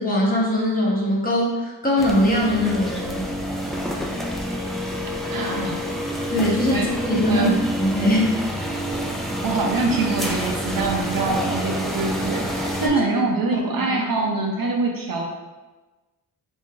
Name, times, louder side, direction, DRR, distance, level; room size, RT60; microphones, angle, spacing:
voice 1, 0.0-3.3 6.3-7.5 7.8-8.3 12.8-13.0, left 1 dB, 20° left, -4 dB, 0.9 m, -21 dB
sound 1, 2.0-12.9, equal, ahead, 0.4 m, -28 dB
voice 2, 5.3-5.8 6.7-6.9 7.3-7.6 9.4-15.2, right 3 dB, 55° right, 1 dB, 0.6 m, -24 dB
3.2 x 2.6 x 3.7 m, 1.2 s
wide cardioid pair, 100°, 41 cm